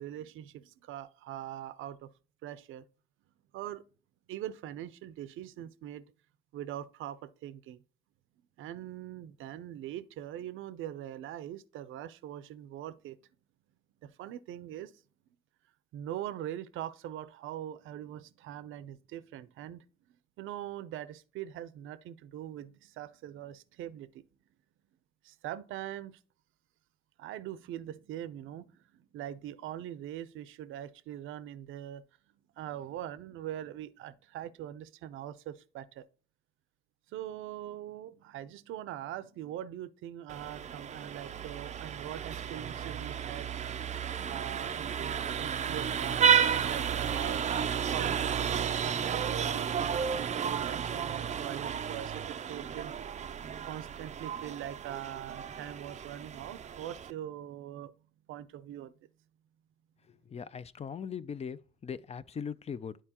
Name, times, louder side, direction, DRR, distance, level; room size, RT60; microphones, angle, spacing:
voice 1, 0.0-2.1 2.4-2.8 3.5-3.8 4.3-6.1 6.5-7.8 8.6-13.2 14.0-14.9 15.9-19.8 20.4-24.2 25.2-26.2 27.2-32.0 32.6-36.1 37.1-43.7 44.2-47.4 47.7-52.9 53.6-57.9 58.3-58.9, right 11 dB, 85° right, 0.5 m, -42 dB
Vehicle horn car horn honking, 40.3-57.1, right 8 dB, 35° right, 0.4 m, -32 dB
voice 2, 60.1-63.0, left 7 dB, 35° left, 0.4 m, -40 dB
10.0 x 4.5 x 2.9 m
cardioid pair, 90°, 20 cm